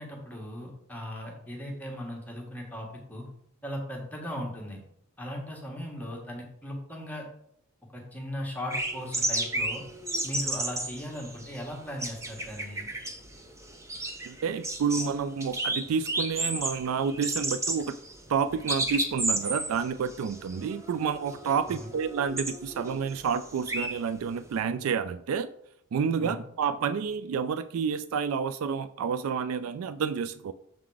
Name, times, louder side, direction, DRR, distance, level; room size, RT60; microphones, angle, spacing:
voice 1, 0.0-3.3 3.6-4.8 5.2-7.2 7.9-9.8 10.2-12.9 21.8-21.9 26.2-26.4, equal, 10° left, -1 dB, 1.3 m, -38 dB
sound 1, 8.7-24.6, right 1 dB, 15° right, 0.7 m, -33 dB
voice 2, 14.3-18.0 18.3-25.5 25.9-30.5, right 6 dB, 70° right, 12 dB, 0.3 m, -29 dB
7.0 x 3.8 x 4.8 m, 0.71 s
head